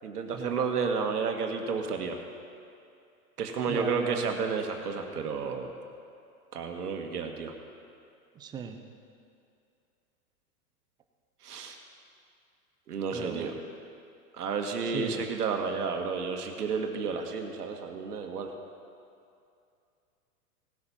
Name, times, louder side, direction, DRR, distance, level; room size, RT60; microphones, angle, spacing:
voice 1, 0.0-2.2 3.4-5.7 6.5-7.5 11.4-11.8 12.9-13.5 14.3-18.5, right 5 dB, 80° right, 4 dB, 1.7 m, -31 dB
voice 2, 3.7-4.4 8.4-8.8 13.1-13.5 14.9-15.3 17.1-17.2, right 6 dB, 10° right, 6 dB, 0.4 m, -37 dB
17.5 x 8.4 x 5.6 m, 2.5 s
hypercardioid pair, 120°, 45 cm